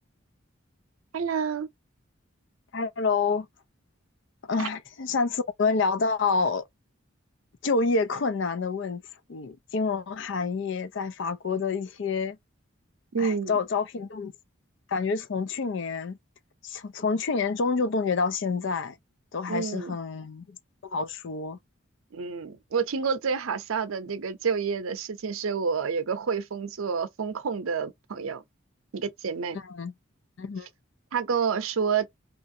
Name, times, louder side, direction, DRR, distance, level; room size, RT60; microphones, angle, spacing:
voice 1, 1.1-1.7 4.6-4.7 13.1-13.6 19.5-20.0 22.1-28.4 28.9-29.6 31.1-32.1, right 6 dB, 85° right, 0.6 m, -29 dB
voice 2, 2.7-3.5 4.5-6.6 7.6-9.0 9.3-12.4 13.2-14.3 14.9-16.2 16.6-19.0 19.3-20.6 20.8-21.6 29.5-29.9 30.4-30.7, left 4 dB, 60° left, 0.4 m, -28 dB
2.9 x 2.5 x 2.6 m
head